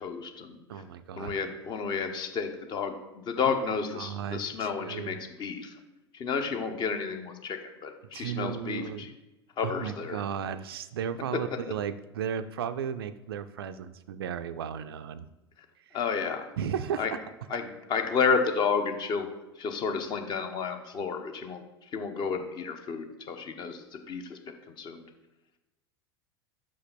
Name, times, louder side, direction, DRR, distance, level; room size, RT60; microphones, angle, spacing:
voice 1, 0.0-0.6 1.2-3.0 3.3-5.7 6.1-9.1 9.6-10.2 15.9-16.5 17.0-17.1 17.5-19.3 19.6-21.6 21.9-25.0, left 5 dB, 35° left, 6 dB, 1.0 m, -31 dB
voice 2, 0.7-1.3 3.4-3.6 3.9-5.2 8.1-9.1 9.6-15.3 15.9-16.0 16.6-17.2, right 8 dB, 65° right, 11 dB, 0.4 m, -35 dB
5.7 x 5.4 x 5.9 m, 1.0 s
figure-of-eight pair, 80°, 14 cm